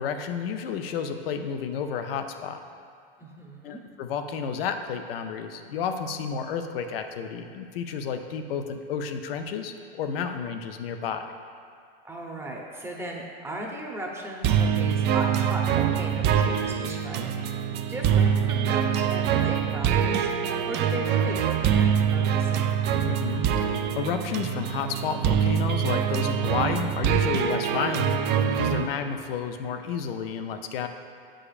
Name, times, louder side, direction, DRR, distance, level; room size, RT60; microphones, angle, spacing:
voice 1, 0.0-2.6 3.6-11.3 23.0-28.2 28.5-30.9, left 6 dB, 75° left, 7 dB, 0.6 m, -31 dB
voice 2, 3.2-3.8 12.0-22.8, right 1 dB, 10° right, -1 dB, 0.8 m, -37 dB
sound 1, 14.4-28.8, right 8 dB, 35° right, 0.4 m, -24 dB
8.4 x 5.0 x 2.5 m, 2.3 s
hypercardioid pair, 105°, 29 cm